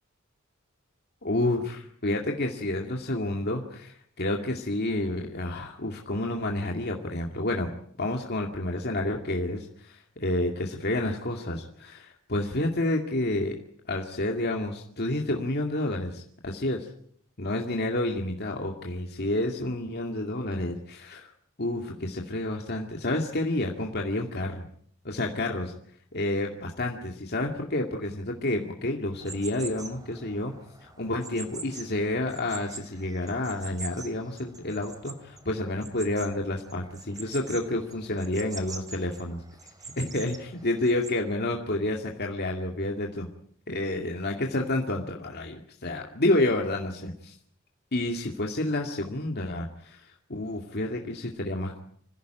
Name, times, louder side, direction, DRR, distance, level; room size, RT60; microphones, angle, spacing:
voice 1, 1.2-13.6 13.9-16.8 17.4-21.3 21.6-24.6 25.0-25.7 26.1-30.5 30.8-39.4 40.0-43.3 43.7-47.3 47.9-51.8, left 1 dB, 50° left, 1 dB, 2.3 m, -29 dB
sound 1, 29.2-41.1, right 4 dB, 20° right, 2.8 m, -45 dB
26.0 x 16.5 x 9.1 m, 0.64 s
head